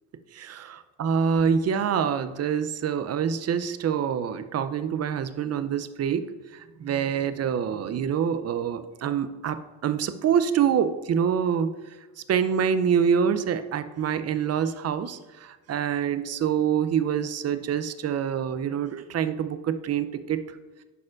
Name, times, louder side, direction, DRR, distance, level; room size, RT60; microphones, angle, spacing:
voice 1, 0.3-6.3 6.5-9.6 9.8-11.7 12.3-20.4, right 7 dB, 35° right, 12 dB, 0.5 m, -26 dB
11.0 x 4.3 x 2.4 m, 1.3 s
supercardioid pair, 75°, 44 cm